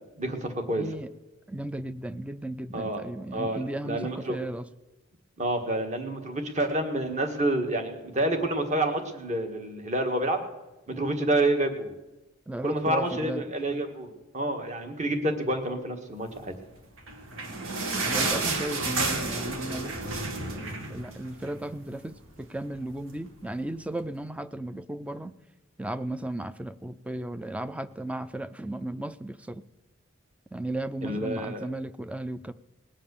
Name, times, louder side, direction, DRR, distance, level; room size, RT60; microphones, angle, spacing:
voice 1, 0.2-0.8 2.7-3.1 3.3-4.4 5.4-10.4 10.9-11.9 12.6-16.5 31.0-31.7, right 1 dB, 35° right, 5 dB, 1.6 m, -28 dB
voice 2, 0.8-1.1 1.5-4.6 12.5-13.5 18.1-20.2 20.5-25.3 25.8-29.6 30.5-32.5, right 1 dB, 5° right, 14 dB, 0.4 m, -35 dB
sound 1, 16.9-21.7 22.0-22.1 22.4-22.6 23.3-23.4, right 3 dB, 80° right, 1.7 m, -31 dB
19.5 x 7.5 x 6.9 m, 1.0 s
head